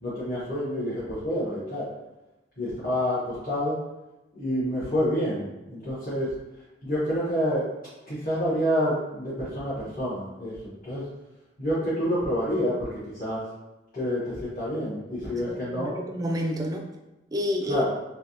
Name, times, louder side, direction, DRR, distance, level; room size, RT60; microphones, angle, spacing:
voice 1, 0.0-1.9 2.6-3.8 4.3-6.3 6.8-7.6 8.1-11.0 11.6-13.4 13.9-15.9 17.7-17.8, equal, 50° left, -11 dB, 1.1 m, -28 dB
voice 2, 15.5-16.9 17.3-17.8, left 1 dB, 20° right, 2 dB, 0.4 m, -29 dB
3.3 x 2.7 x 2.7 m, 1.0 s
head